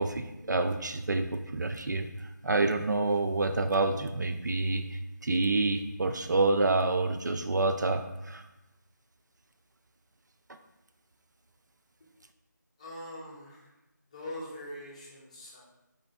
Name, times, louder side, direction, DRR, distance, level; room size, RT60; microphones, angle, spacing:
voice 1, 0.0-2.1 2.4-8.4, right 3 dB, 65° right, 7 dB, 0.4 m, -28 dB
voice 2, 12.8-13.7 14.1-15.6, left 1 dB, 20° left, -5 dB, 0.7 m, -42 dB
3.9 x 3.1 x 4.1 m, 0.97 s
figure-of-eight pair, 165°, 10 cm